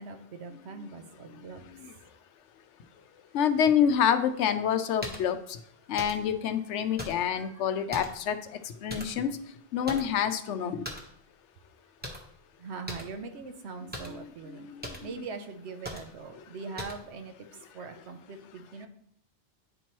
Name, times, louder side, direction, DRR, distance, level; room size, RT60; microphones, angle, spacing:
voice 1, 0.0-1.7 7.2-8.1 12.6-14.7 15.0-18.9, right 4 dB, 70° right, 7 dB, 1.0 m, -42 dB
voice 2, 3.3-5.6 5.9-8.4 8.8-9.3 9.7-10.8 13.8-15.1, left 8 dB, 85° left, 9 dB, 0.9 m, -28 dB
sound 1, 5.0-5.3 6.0-6.3 7.0-7.3 7.9-8.3 8.9-9.3 9.9-10.2 10.8-11.1 12.0-12.4 12.9-13.1 13.9-14.2 14.8-15.1 15.8-16.2 16.8-17.1, equal, 10° right, 1.0 m, -40 dB
9.8 x 4.4 x 3.0 m, 0.69 s
omnidirectional pair, 1.2 m